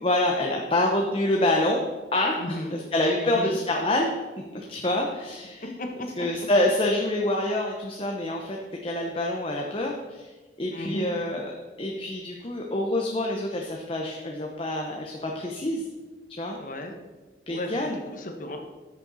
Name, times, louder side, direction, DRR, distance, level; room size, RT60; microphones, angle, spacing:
voice 1, 0.0-1.8 2.1-4.1 4.5-5.7 6.2-10.3 10.6-11.5 11.8-15.8 16.3-16.6 17.5-18.0, left 1 dB, 30° left, 0 dB, 0.9 m, -26 dB
voice 2, 2.4-2.7 3.2-3.6 5.6-6.5 10.7-11.1 16.6-17.0 17.5-18.6, left 1 dB, 50° left, 4 dB, 1.2 m, -35 dB
13.5 x 6.6 x 4.1 m, 1.3 s
head